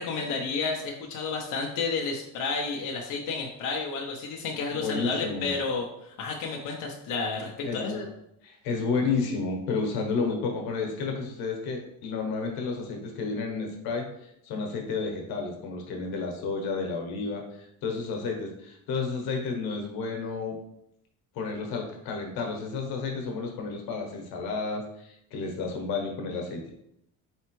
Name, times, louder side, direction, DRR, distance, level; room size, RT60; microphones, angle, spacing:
voice 1, 0.0-8.1, left 4 dB, 55° left, 0 dB, 0.7 m, -31 dB
voice 2, 4.7-5.6 7.6-8.0 8.4-20.6 21.3-26.7, left 4 dB, 85° left, 2 dB, 1.1 m, -31 dB
4.4 x 3.2 x 3.0 m, 0.78 s
cardioid pair, 160°, 36 cm